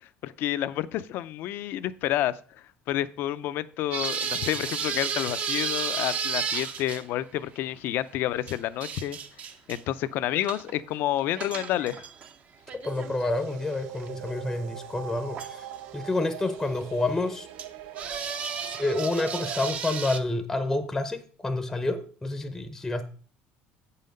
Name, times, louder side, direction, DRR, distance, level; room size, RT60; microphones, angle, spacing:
voice 1, 0.0-2.3 2.9-9.2 9.7-12.0, left 13 dB, 60° left, 0.5 m, -29 dB
sound 1, 3.9-7.0 8.5-9.8 10.4-10.8 11.1-12.3 12.7-14.1 14.6-14.7 15.3-15.7 16.8-16.9 17.6-17.7 17.9-20.2, right 6 dB, 35° right, 0.6 m, -33 dB
voice 2, 12.7-15.7 15.9-17.5 18.6-23.0, left 2 dB, 10° left, 0.6 m, -29 dB
sound 2, 12.9-19.7, right 10 dB, 85° right, 0.8 m, -41 dB
8.2 x 5.7 x 5.2 m
cardioid pair, 155°, 4 cm